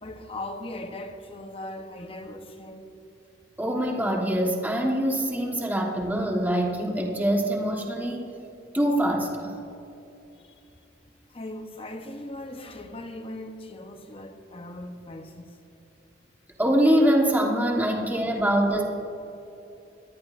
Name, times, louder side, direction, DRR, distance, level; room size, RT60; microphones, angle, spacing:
voice 1, 0.0-2.9 10.4-10.5 11.3-15.6, left 1 dB, 30° left, 0.9 m, -39 dB
voice 2, 3.6-8.3 8.7-9.6 16.6-18.8, right 1 dB, 10° right, 1.3 m, -24 dB
21.5 x 14.0 x 2.6 m
head